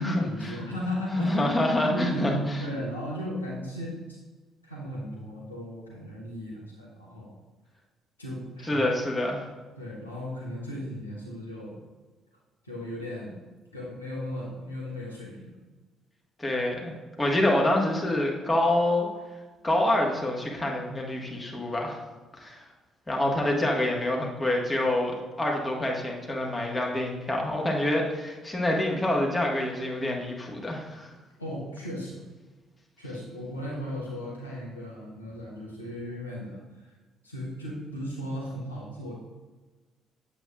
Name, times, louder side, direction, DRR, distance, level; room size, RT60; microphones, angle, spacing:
voice 1, 0.0-1.5 1.9-4.2 4.6-7.3 8.2-8.8 9.8-11.8 12.6-13.3 13.7-15.5 31.4-32.2 33.0-36.9 37.2-39.1, equal, 90° left, -5 dB, 1.1 m, -35 dB
voice 2, 1.2-2.6 8.6-9.5 16.4-19.1 19.6-22.0 22.3-22.7 23.1-31.1, left 1 dB, 20° left, -1 dB, 1.6 m, -27 dB
7.9 x 7.4 x 2.4 m, 1.3 s
figure-of-eight pair, 50°, 0 cm